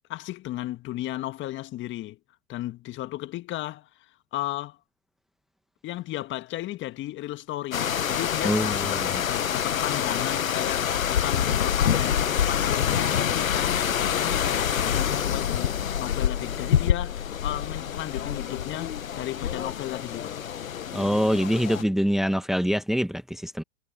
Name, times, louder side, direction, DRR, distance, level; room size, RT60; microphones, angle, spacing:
voice 1, 0.1-2.2 2.5-4.8 5.8-20.4, left 15 dB, 30° left, 1.8 m, -35 dB
sound 1, 7.7-21.8, left 9 dB, 80° left, 1.3 m, -26 dB
voice 2, 8.4-9.1 20.9-23.6, equal, ahead, 1.7 m, -25 dB
hypercardioid pair, 110°, 40 cm